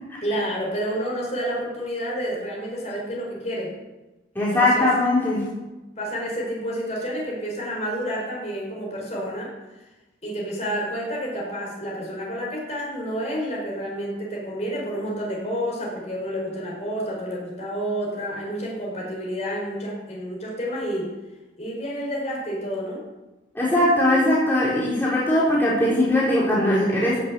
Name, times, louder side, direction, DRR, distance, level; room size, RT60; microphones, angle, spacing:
voice 1, 0.2-3.8 4.3-4.9 6.0-9.8 10.2-21.1 21.6-23.0, equal, 35° left, -3 dB, 5.0 m, -29 dB
voice 2, 4.4-5.5 23.5-27.2, left 1 dB, 10° left, -7 dB, 4.1 m, -20 dB
15.5 x 7.8 x 8.4 m, 1.1 s
head